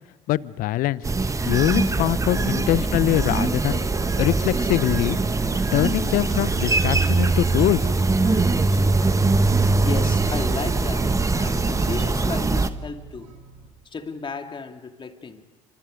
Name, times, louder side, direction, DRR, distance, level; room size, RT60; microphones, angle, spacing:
voice 1, 0.3-1.0 1.4-3.9 4.2-5.2 5.7-7.9, left 15 dB, 55° left, 20 dB, 0.8 m, -23 dB
sound 1, 1.0-12.7, right 3 dB, 20° right, 1.4 m, -22 dB
sound 2, 3.1-12.1, left 10 dB, 80° left, 2.1 m, -47 dB
sound 3, 3.9-13.7, right 5 dB, 80° right, 5.7 m, -46 dB
voice 2, 9.8-13.3 13.8-15.4, left 4 dB, 30° left, 5 dB, 2.7 m, -34 dB
30.0 x 26.0 x 5.3 m, 1.2 s
hypercardioid pair, 60°, 17 cm